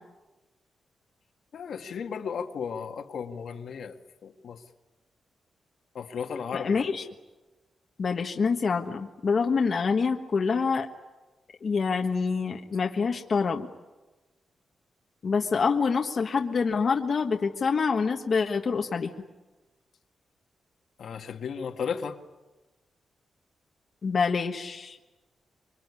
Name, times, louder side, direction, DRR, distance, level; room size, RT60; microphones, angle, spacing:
voice 1, 1.5-3.9 4.2-4.6 5.9-6.9 21.0-22.2, left 6 dB, 70° left, 4 dB, 1.9 m, -34 dB
voice 2, 6.5-7.0 8.0-10.9 11.6-13.7 15.2-19.1 24.0-25.0, left 5 dB, 45° left, 3 dB, 1.4 m, -26 dB
26.0 x 23.5 x 9.8 m, 1.1 s
wide cardioid pair, 135°, 0 cm